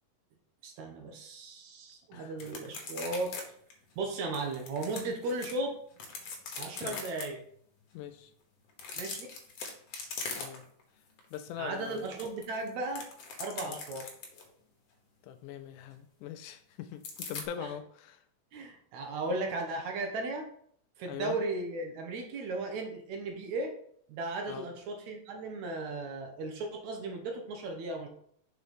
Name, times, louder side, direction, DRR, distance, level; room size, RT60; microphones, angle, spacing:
voice 1, 0.6-3.3 4.0-5.8 6.6-7.4 9.0-9.3 11.6-13.1 13.4-14.1 17.6-17.7 18.5-20.5 21.0-23.7 24.1-28.1, right 2 dB, 70° right, 3 dB, 1.9 m, -36 dB
sound 1, 2.4-3.4 3.7-3.8 4.3-5.5 5.9-7.2 8.7-10.8 11.2-11.4 11.7-14.5 17.0-17.5, left 4 dB, 60° left, 1.8 m, -41 dB
voice 2, 7.9-8.3 10.4-10.7 11.3-12.1 13.6-13.8 15.2-18.2 21.1-21.4 24.5-24.7, left 9 dB, 80° left, 9 dB, 1.8 m, -42 dB
6.2 x 4.4 x 5.2 m, 0.63 s
omnidirectional pair, 3.9 m